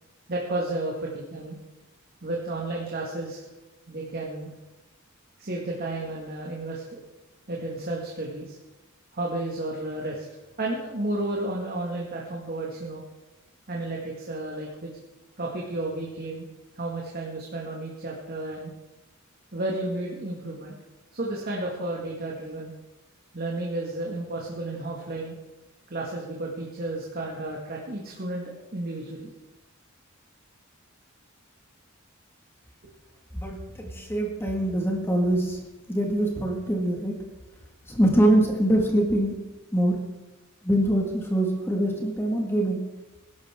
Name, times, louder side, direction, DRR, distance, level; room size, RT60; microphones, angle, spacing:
voice 1, 0.3-1.6 2.2-3.4 3.9-4.5 5.4-7.0 7.5-8.6 9.1-10.3 10.6-13.0 13.7-14.9 15.4-16.5 16.8-18.7 19.5-20.8 21.1-22.7 23.3-25.3 25.9-28.4 28.7-29.3, right 2 dB, 45° right, -2 dB, 2.0 m, -32 dB
voice 2, 33.3-35.6 35.9-37.1 37.9-39.4 39.7-40.0 40.6-42.8, right 1 dB, 10° left, 1 dB, 1.9 m, -24 dB
19.5 x 11.5 x 3.7 m, 1.0 s
head